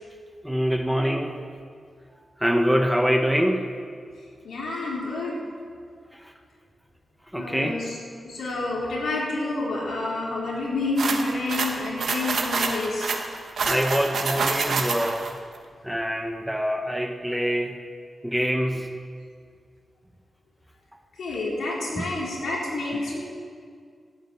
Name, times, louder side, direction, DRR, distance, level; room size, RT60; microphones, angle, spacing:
voice 1, 0.4-1.4 2.4-3.6 6.1-6.3 7.3-7.9 13.7-15.3 15.8-17.8 18.2-18.9 22.0-22.1 22.9-23.0, equal, ahead, 4 dB, 0.9 m, -25 dB
voice 2, 4.4-5.3 7.3-8.0 8.2-13.1 21.2-23.2, left 2 dB, 90° left, -4 dB, 4.0 m, -29 dB
sound 1, 11.0-15.3, right 4 dB, 70° right, 1.4 m, -27 dB
12.0 x 8.8 x 9.0 m, 2.1 s
wide cardioid pair, 145°, 0 cm